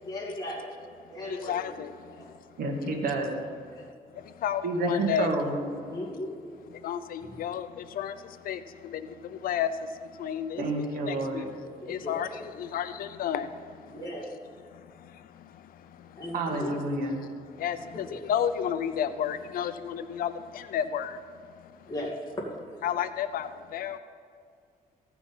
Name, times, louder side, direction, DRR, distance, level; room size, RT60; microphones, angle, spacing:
voice 1, 0.1-0.7 1.1-1.8 2.1-2.3 3.8-3.9 5.8-6.6 7.3-7.4 11.8-12.2 13.9-14.3 16.2-16.7 17.9-18.2 21.9-22.5, left 1 dB, 25° left, -3 dB, 2.4 m, -37 dB
voice 2, 1.4-1.9 2.8-2.9 4.4-5.3 6.8-7.7 8.0-8.1 8.5-8.6 9.4-9.7 10.2-10.6 11.1-11.4 11.9-12.3 12.6-13.5 17.6-20.3 20.7-21.1 22.8-23.5 23.7-24.0, left 9 dB, 75° left, 11 dB, 0.5 m, -30 dB
voice 3, 2.6-3.4 4.6-5.5 10.6-11.4 16.3-17.2, right 2 dB, 75° right, 2 dB, 1.7 m, -29 dB
15.0 x 6.1 x 5.5 m, 2.3 s
cardioid pair, 145°, 15 cm